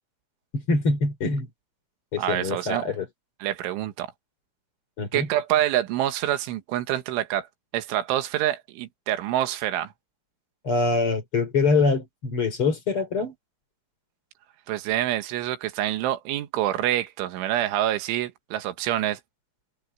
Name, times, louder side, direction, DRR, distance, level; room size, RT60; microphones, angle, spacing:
voice 1, 0.5-1.5 2.1-3.1 5.0-5.3 10.6-13.3, left 3 dB, 30° left, 3.8 m, -24 dB
voice 2, 2.2-2.8 3.4-4.1 5.1-7.5 7.7-9.9 14.7-19.2, right 13 dB, 85° right, 3.8 m, -26 dB
omnidirectional pair, 5.4 m